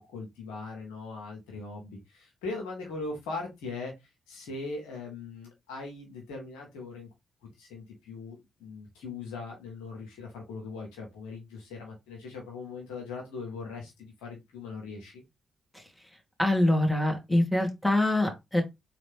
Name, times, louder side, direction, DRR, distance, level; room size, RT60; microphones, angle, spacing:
voice 1, 0.0-3.9 4.3-7.1 7.6-15.2, left 3 dB, 85° left, 0 dB, 1.4 m, -40 dB
voice 2, 16.4-18.6, left 1 dB, 10° left, 1 dB, 2.1 m, -24 dB
3.8 x 3.2 x 3.4 m, 0.21 s
hypercardioid pair, 45°, 0 cm